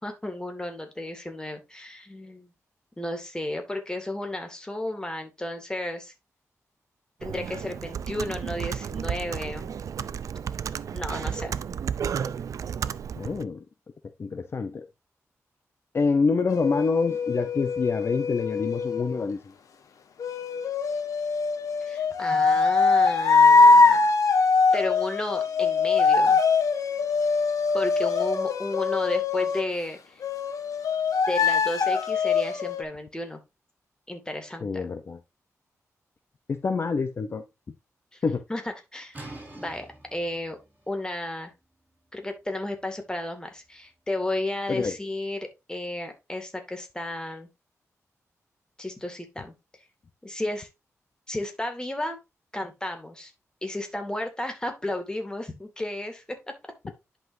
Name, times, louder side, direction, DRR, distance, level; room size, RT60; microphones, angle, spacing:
voice 1, 0.0-2.5 3.0-6.1 7.2-9.7 10.9-11.6 21.8-24.1 24.7-26.4 27.7-30.2 31.3-33.4 34.1-34.9 38.1-38.2 38.5-39.3 39.5-39.9 40.1-40.6 40.9-41.5 42.1-47.5 48.8-49.5 50.2-50.7 51.3-52.2 52.5-53.3 53.6-56.6, left 1 dB, 15° left, 2.4 m, -33 dB
Computer keyboard, 7.2-13.4, right 8 dB, 80° right, 0.5 m, -32 dB
voice 2, 13.2-13.6 14.2-14.9 15.9-19.4 34.6-35.2 36.5-37.4 38.2-38.4 44.7-44.9, left 4 dB, 50° left, 0.8 m, -26 dB
sound 1, 16.5-19.2 20.2-29.7 30.2-32.8, left 4 dB, 90° left, 1.4 m, -22 dB
sound 2, 39.1-44.8, right 2 dB, 25° right, 5.9 m, -48 dB
10.5 x 5.7 x 2.7 m
wide cardioid pair, 115°, 6 cm